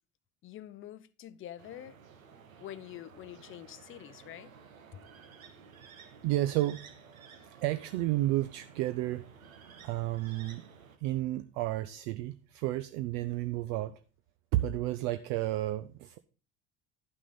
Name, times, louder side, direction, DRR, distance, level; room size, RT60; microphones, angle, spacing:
voice 1, 0.4-2.0 2.6-4.5 4.9-5.0, left 12 dB, 30° left, 0.5 m, -46 dB
sound 1, 1.6-11.0, right 6 dB, 80° right, 1.0 m, -54 dB
voice 2, 6.2-6.8 7.6-9.2 9.8-10.6 11.0-14.0 14.5-16.2, right 15 dB, 50° right, 0.5 m, -31 dB
11.0 x 6.1 x 3.9 m
figure-of-eight pair, 60°, 41 cm